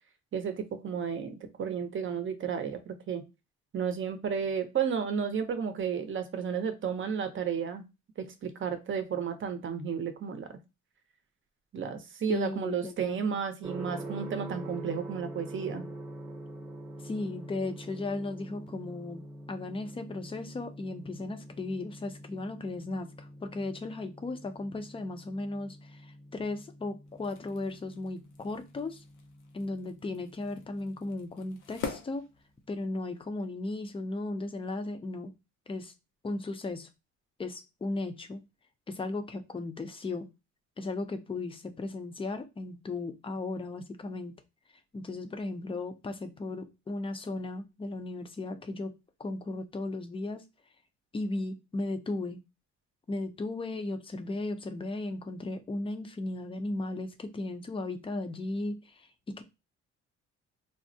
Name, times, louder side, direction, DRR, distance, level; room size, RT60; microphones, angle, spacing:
voice 1, 0.3-3.2 3.7-7.8 8.2-10.6 11.7-15.9, right 7 dB, 40° right, 8 dB, 0.7 m, -32 dB
voice 2, 12.3-13.4 17.0-19.2 19.5-29.0 29.5-32.3 32.7-35.3 35.7-35.9 36.2-36.9 37.4-38.4 38.9-40.3 40.8-44.3 44.9-48.9 49.2-50.4 51.1-52.4 53.1-59.4, left 2 dB, 20° left, 8 dB, 0.5 m, -36 dB
Gong, 13.6-31.5, right 1 dB, 15° right, 0.9 m, -45 dB
sound 1, 27.0-33.0, left 5 dB, 90° left, 0.7 m, -45 dB
3.3 x 2.1 x 2.7 m, 0.26 s
cardioid pair, 90°, 30 cm